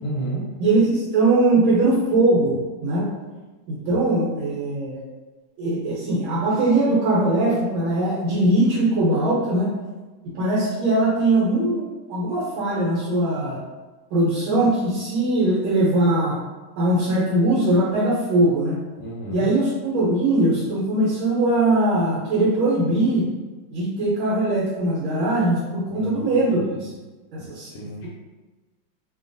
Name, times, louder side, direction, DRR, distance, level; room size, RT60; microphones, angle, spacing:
voice 1, 0.0-0.6 19.0-19.5 25.9-26.7 27.4-28.1, right 1 dB, 70° left, -4 dB, 1.2 m, -32 dB
voice 2, 0.6-3.1 3.7-5.0 5.6-9.7 10.3-13.6 14.1-16.4 16.8-18.8 19.3-23.3 23.7-26.9 27.3-27.7, right 2 dB, 80° right, -7 dB, 1.5 m, -21 dB
3.4 x 2.2 x 2.5 m, 1.2 s
omnidirectional pair, 2.2 m